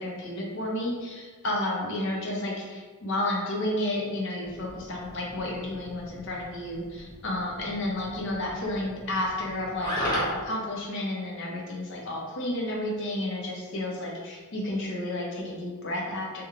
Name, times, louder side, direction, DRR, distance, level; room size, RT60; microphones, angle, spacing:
voice 1, 0.0-16.4, left 1 dB, 55° left, -2 dB, 0.6 m, -31 dB
sound 1, 4.4-10.5, equal, 20° left, 0.6 m, -36 dB
3.0 x 2.2 x 2.4 m, 1.4 s
head